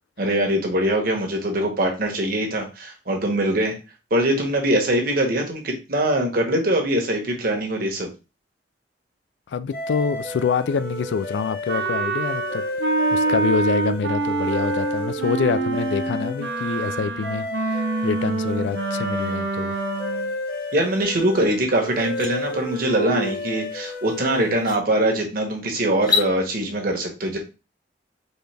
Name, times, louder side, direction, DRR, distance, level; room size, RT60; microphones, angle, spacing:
voice 1, 0.2-3.8 4.1-8.1 20.7-27.4, right 1 dB, 55° right, 1.2 m, -22 dB
voice 2, 9.5-12.6 13.1-19.8, left 5 dB, 80° left, 0.4 m, -26 dB
sound 1, 9.7-24.8, left 1 dB, 55° left, 1.2 m, -32 dB
Wind instrument woodwind instrument, 11.7-20.3, right 3 dB, 80° right, 0.7 m, -26 dB
sound 2, 21.4-21.5 21.9-22.3 23.9-24.0 24.5-24.8 25.9-26.3, left 7 dB, 25° left, 0.6 m, -25 dB
4.3 x 3.3 x 3.3 m
head